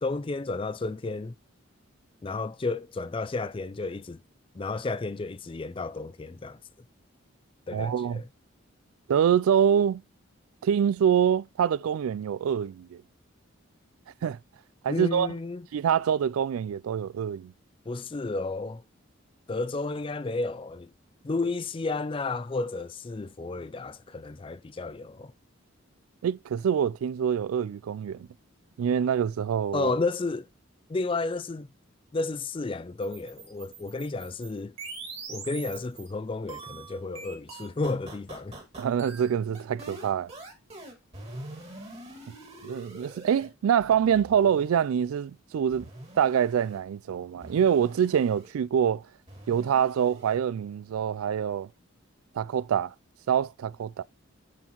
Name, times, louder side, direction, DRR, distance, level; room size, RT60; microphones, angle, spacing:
voice 1, 0.0-1.3 2.2-4.2 4.5-6.6 7.7-8.3 14.9-15.7 17.9-18.8 19.5-20.9 21.2-25.3 29.7-30.5 30.9-31.7 32.1-34.7 35.3-38.6, left 3 dB, 25° left, 0.4 m, -32 dB
voice 2, 7.7-8.2 9.1-10.0 10.6-13.0 14.2-14.4 14.8-15.3 15.7-17.5 26.2-28.3 28.8-29.9 38.8-40.3 42.6-45.9 46.2-49.0 49.5-51.7 52.4-52.9 53.3-54.0, right 8 dB, 90° right, 0.3 m, -25 dB
sound 1, 33.0-36.1 36.5-43.5 43.8-44.9 45.7-46.8 47.4-48.5 49.3-50.4, right 3 dB, 30° right, 2.0 m, -44 dB
9.3 x 4.4 x 3.0 m
head